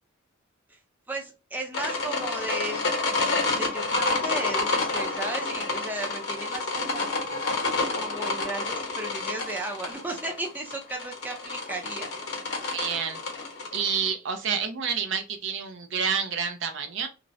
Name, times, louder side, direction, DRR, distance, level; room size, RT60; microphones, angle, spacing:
voice 1, 1.1-7.2 8.0-12.1, right 2 dB, 10° right, 1 dB, 0.5 m, -35 dB
sound 1, 1.7-14.1, left 3 dB, 55° left, 0.8 m, -29 dB
voice 2, 12.7-13.2 13.7-17.1, right 6 dB, 65° right, 7 dB, 0.5 m, -29 dB
2.5 x 2.0 x 2.5 m, 0.29 s
head